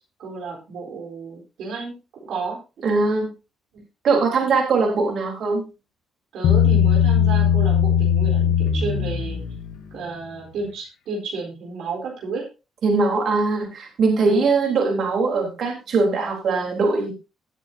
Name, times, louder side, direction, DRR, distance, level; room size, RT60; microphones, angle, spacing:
voice 1, 0.2-1.9 2.2-2.6 3.7-3.8 6.3-9.4 9.9-12.5, right 4 dB, 80° right, 0 dB, 4.1 m, -32 dB
voice 2, 2.8-3.3 4.0-5.6 12.8-17.1, right 4 dB, 60° right, 1 dB, 3.9 m, -21 dB
Bass guitar, 6.4-9.8, left 8 dB, 85° left, 1.5 m, -19 dB
18.5 x 7.5 x 2.8 m, 0.29 s
cardioid pair, 90°, 0 cm